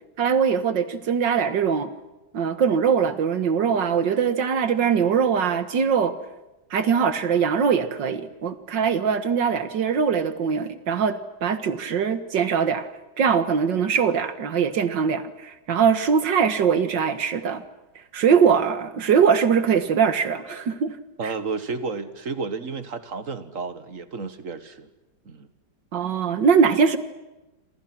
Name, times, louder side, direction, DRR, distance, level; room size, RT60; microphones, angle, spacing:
voice 1, 0.2-1.9 2.3-6.2 6.7-12.9 13.2-17.6 18.1-20.9 21.2-21.3 25.9-27.0, right 6 dB, 85° right, 11 dB, 2.2 m, -22 dB
voice 2, 21.2-24.9 25.3-25.5, right 4 dB, 50° right, 11 dB, 1.8 m, -32 dB
27.5 x 26.0 x 6.1 m, 1.0 s
omnidirectional pair, 1.9 m